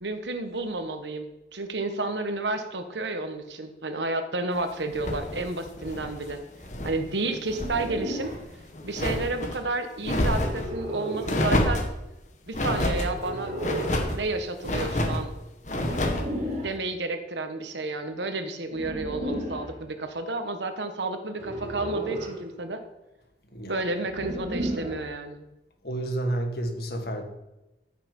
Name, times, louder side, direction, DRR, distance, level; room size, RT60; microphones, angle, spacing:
voice 1, 0.0-6.4 6.8-8.3 8.8-11.8 12.5-13.5 14.1-15.3 16.6-22.8 23.7-25.4, right 2 dB, 85° right, 7 dB, 1.4 m, -31 dB
sound 1, 4.9-7.0 7.3-7.9 8.2-9.6 10.0-10.7 11.2-11.9 12.5-13.1 13.6-14.2 14.6-15.2 15.6-16.3, left 1 dB, 40° left, 1.5 m, -28 dB
sound 2, 7.5-8.4 10.4-11.4 13.1-14.1 15.8-16.8 18.7-19.7 21.4-22.4 24.1-25.1, right 1 dB, 40° right, 2.6 m, -33 dB
voice 2, 25.8-27.2, right 1 dB, 60° left, 4 dB, 1.8 m, -30 dB
14.5 x 6.8 x 5.5 m, 0.99 s
head